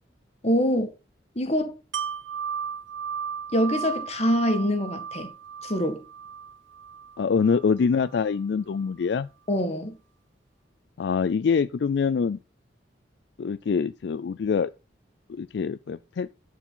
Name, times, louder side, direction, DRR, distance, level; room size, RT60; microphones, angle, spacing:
voice 1, 0.4-0.9 1.3-1.7 3.5-5.3 5.6-6.0 9.5-10.0, equal, 35° left, 1.6 m, -24 dB
Wind chime, 1.9-7.7 8.1-8.3, right 7 dB, 85° right, 0.9 m, -35 dB
voice 2, 7.2-9.3 11.0-12.4 13.4-14.7 15.3-16.3, left 5 dB, 65° left, 0.4 m, -25 dB
11.0 x 4.7 x 5.6 m
head